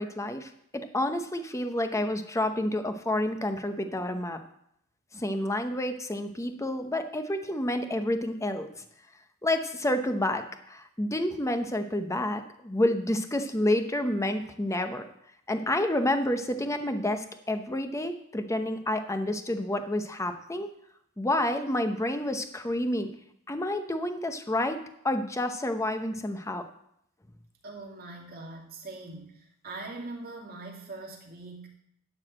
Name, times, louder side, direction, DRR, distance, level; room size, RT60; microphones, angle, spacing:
voice 1, 0.0-4.4 5.1-8.7 9.4-15.0 15.5-20.7 21.2-23.1 23.5-24.8 25.0-26.6, left 1 dB, 15° left, 7 dB, 0.8 m, -29 dB
voice 2, 27.6-29.3 29.6-31.7, right 2 dB, 45° right, -1 dB, 2.4 m, -41 dB
12.0 x 4.8 x 7.6 m, 0.72 s
head